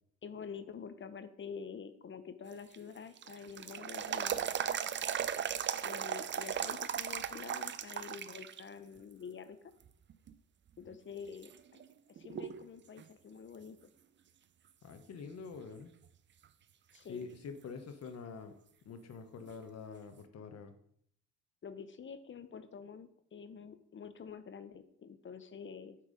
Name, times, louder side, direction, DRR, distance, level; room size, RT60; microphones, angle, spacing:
voice 1, 0.2-4.5 5.8-9.6 10.8-11.8 12.1-13.9 16.9-17.3 21.6-26.0, left 6 dB, 40° left, 12 dB, 0.8 m, -47 dB
sound 1, 2.5-8.6 9.0-9.1 9.9-10.3 10.9-11.0 11.4-12.7 13.0-13.1 16.4-16.5 19.5-19.6, right 9 dB, 40° right, 0.5 m, -37 dB
voice 2, 14.8-15.9 17.1-18.6 18.8-20.7, left 5 dB, 55° left, 7 dB, 1.1 m, -46 dB
8.4 x 4.6 x 5.2 m, 0.67 s
cardioid pair, 90°, 30 cm